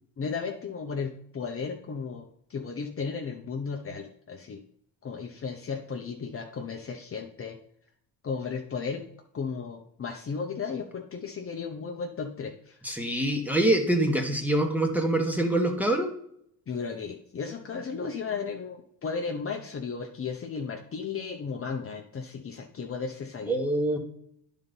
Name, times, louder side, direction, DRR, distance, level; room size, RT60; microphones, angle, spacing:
voice 1, 0.2-4.6 5.0-7.6 8.2-9.0 9.3-12.8 16.7-23.6, left 5 dB, 30° left, 2 dB, 0.8 m, -35 dB
voice 2, 12.8-16.1 23.5-24.0, right 1 dB, 5° right, 3 dB, 1.6 m, -25 dB
9.7 x 4.2 x 5.3 m, 0.69 s
cardioid pair, 95°, 42 cm